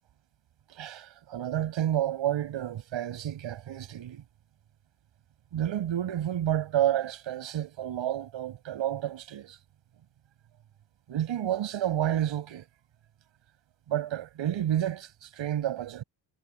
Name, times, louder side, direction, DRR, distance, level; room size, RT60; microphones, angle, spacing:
voice 1, 0.7-4.2 5.5-9.6 11.1-12.7 13.9-16.0, right 11 dB, 65° right, 6.0 m, -30 dB
cardioid pair, 155°, 48 cm